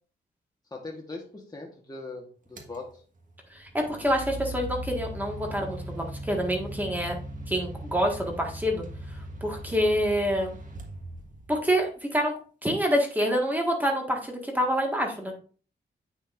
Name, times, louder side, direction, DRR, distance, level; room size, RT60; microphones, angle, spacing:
voice 1, 0.7-3.0, left 3 dB, 20° left, 0 dB, 1.2 m, -40 dB
sound 1, 2.6-2.8 3.7-11.7, right 1 dB, 45° right, 1.5 m, -39 dB
voice 2, 3.5-7.2 7.5-10.5 11.5-12.3 12.6-15.3, equal, 10° right, 1 dB, 1.6 m, -27 dB
8.5 x 6.3 x 2.5 m, 0.40 s
wide cardioid pair, 110°, 18 cm